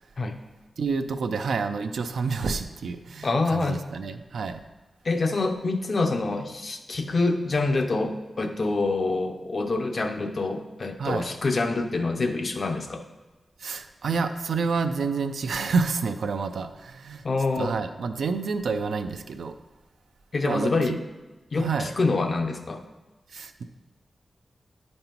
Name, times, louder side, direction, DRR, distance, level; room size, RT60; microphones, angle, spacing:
voice 1, 0.8-4.6 11.0-11.3 13.6-17.2 17.6-19.5 20.4-21.0 21.6-22.0 23.3-23.6, right 4 dB, 85° right, 8 dB, 0.4 m, -28 dB
voice 2, 3.2-3.8 5.0-13.0 17.2-17.7 20.3-21.0 21.5-22.8, left 3 dB, 50° left, 6 dB, 0.6 m, -26 dB
9.6 x 5.3 x 2.9 m, 1.2 s
wide cardioid pair, 85°, 0 cm